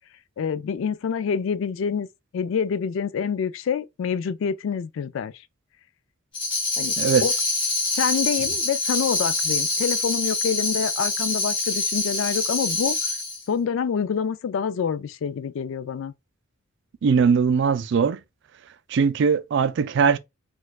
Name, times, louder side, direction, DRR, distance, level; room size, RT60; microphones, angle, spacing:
voice 1, 0.4-2.1 2.3-5.3 6.8-6.9 7.2-7.3 8.0-13.0 13.5-16.1, left 7 dB, 65° left, 0.3 m, -26 dB
Tambourine, 6.3-13.4, left 3 dB, 25° left, 1.7 m, -25 dB
voice 2, 17.0-18.2 18.9-20.2, right 6 dB, 60° right, 0.3 m, -20 dB
4.3 x 2.3 x 2.3 m
head